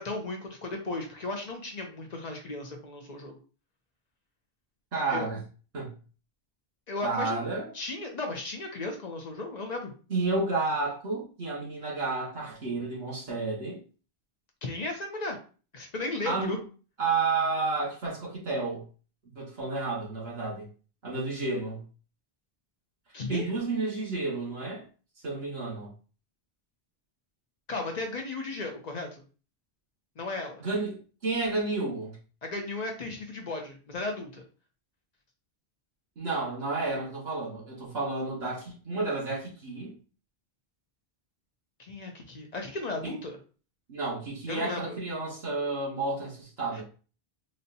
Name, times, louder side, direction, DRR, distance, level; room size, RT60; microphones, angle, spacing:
voice 1, 0.0-3.4 5.1-5.3 6.9-7.4 7.7-9.9 14.6-15.4 15.7-16.6 23.1-23.5 27.7-29.1 30.2-30.6 32.4-34.4 41.8-43.4 44.5-45.0 46.7-46.8, left 2 dB, 45° left, 0.7 m, -35 dB
voice 2, 4.9-5.4 5.7-5.9 7.0-7.7 10.1-13.8 16.2-16.6 17.0-18.9 19.4-20.7 21.0-21.8 23.3-24.8 25.2-25.9 30.6-32.2 36.2-40.0 43.0-43.2 43.9-46.8, right 3 dB, 75° right, 1.8 m, -31 dB
4.0 x 2.2 x 2.7 m
omnidirectional pair, 1.1 m